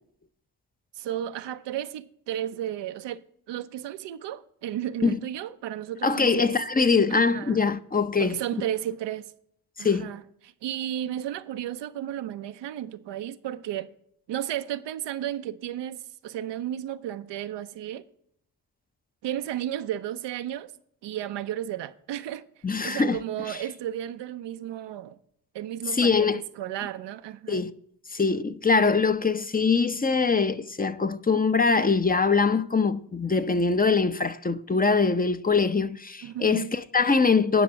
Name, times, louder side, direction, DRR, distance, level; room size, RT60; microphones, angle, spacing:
voice 1, 1.0-3.2 3.5-6.5 7.1-7.6 8.2-9.3 9.8-13.9 14.3-18.1 19.2-20.7 21.0-22.5 22.8-25.2 25.5-27.6 36.2-36.7, right 11 dB, 85° right, 0.7 m, -33 dB
voice 2, 6.0-8.4 9.8-10.1 22.6-23.2 23.5-23.6 25.9-26.4 27.5-27.7 28.1-37.6, left 4 dB, 20° left, 0.7 m, -23 dB
10.0 x 6.0 x 6.3 m
supercardioid pair, 50°, 41 cm